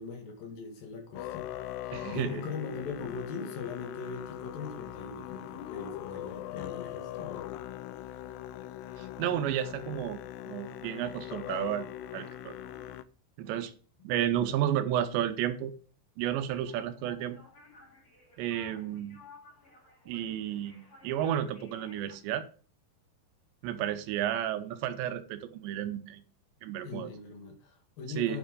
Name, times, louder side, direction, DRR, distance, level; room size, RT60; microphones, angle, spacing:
voice 1, 0.0-1.5 1.8-7.5 26.8-28.4, left 4 dB, 60° left, 3.3 m, -41 dB
Musical instrument, 1.2-13.0, left 13 dB, 80° left, 2.5 m, -41 dB
voice 2, 1.9-2.4 9.0-10.2 10.5-11.9 12.1-12.5 13.4-13.7 14.0-15.7 16.2-17.4 18.4-19.2 20.1-22.4 23.6-26.2 26.6-27.1 28.2-28.4, right 11 dB, 80° right, 3.0 m, -32 dB
sound 1, 16.6-22.2, left 2 dB, 25° left, 2.3 m, -56 dB
9.1 x 7.5 x 5.1 m
omnidirectional pair, 5.2 m